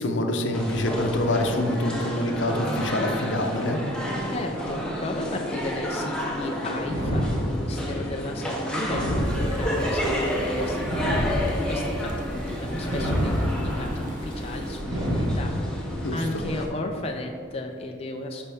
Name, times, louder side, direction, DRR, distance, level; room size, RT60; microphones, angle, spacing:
voice 1, 0.0-3.8 16.0-16.4, left 1 dB, 70° left, 4 dB, 0.8 m, -26 dB
sound 1, 0.5-16.7, equal, 5° left, 1.1 m, -30 dB
voice 2, 4.3-18.4, left 2 dB, 30° left, 1 dB, 0.5 m, -35 dB
sound 2, 6.8-7.9 8.8-9.9 10.8-11.9 12.8-13.9 14.8-15.9, equal, 70° right, 2.1 m, -27 dB
sound 3, 9.2-14.8, equal, 40° right, 0.9 m, -39 dB
12.0 x 5.4 x 3.5 m, 2.4 s
head